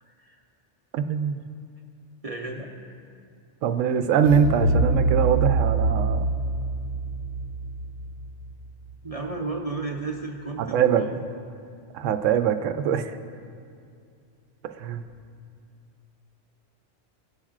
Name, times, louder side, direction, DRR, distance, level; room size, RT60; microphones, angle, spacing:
voice 1, 0.0-0.4 2.2-2.7 9.0-11.1, right 3 dB, 40° right, 0 dB, 0.6 m, -33 dB
voice 2, 0.9-1.4 3.6-6.3 10.7-11.0 11.9-13.2 14.7-15.0, right 7 dB, 85° right, 9 dB, 0.9 m, -23 dB
sound 1, 4.2-9.1, right 3 dB, 80° left, 1.1 m, -25 dB
18.0 x 8.7 x 2.4 m, 2.3 s
omnidirectional pair, 1.3 m